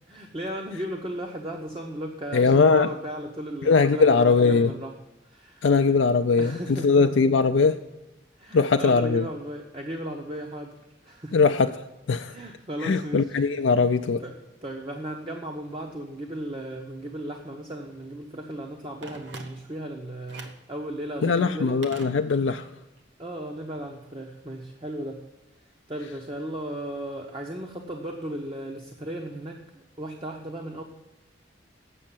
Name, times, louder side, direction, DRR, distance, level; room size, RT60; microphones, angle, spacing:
voice 1, 0.1-4.9 5.2-5.7 6.4-7.0 8.4-10.7 11.0-11.4 12.3-13.4 14.2-21.8 23.2-25.2 25.9-30.8, right 1 dB, 25° right, 1 dB, 0.8 m, -36 dB
voice 2, 2.3-2.9 3.7-4.7 5.6-7.8 8.5-9.2 11.3-11.7 12.1-12.3 12.8-14.2 21.2-22.6, left 4 dB, 70° left, 6 dB, 0.4 m, -20 dB
Telephone, 19.0-19.9 20.3-20.7 21.8-22.7 23.0-23.1, right 3 dB, 70° right, 1.1 m, -43 dB
8.4 x 6.4 x 7.3 m, 1.0 s
head